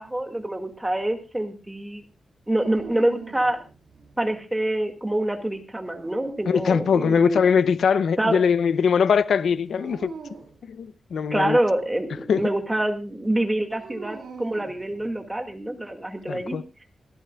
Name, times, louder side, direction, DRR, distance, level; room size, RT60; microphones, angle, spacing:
voice 1, 0.0-2.0 2.5-3.6 4.2-7.4 8.2-8.4 11.3-16.6, right 1 dB, 10° right, 2.0 m, -26 dB
sound 1, 2.6-4.1 5.8-6.9 9.8-10.6 13.8-15.4, right 5 dB, 75° right, 6.9 m, -43 dB
voice 2, 6.5-10.1 10.7-11.6 12.3-12.5 16.3-16.6, left 6 dB, 90° left, 0.6 m, -21 dB
25.5 x 12.0 x 2.3 m
wide cardioid pair, 170°, 0 cm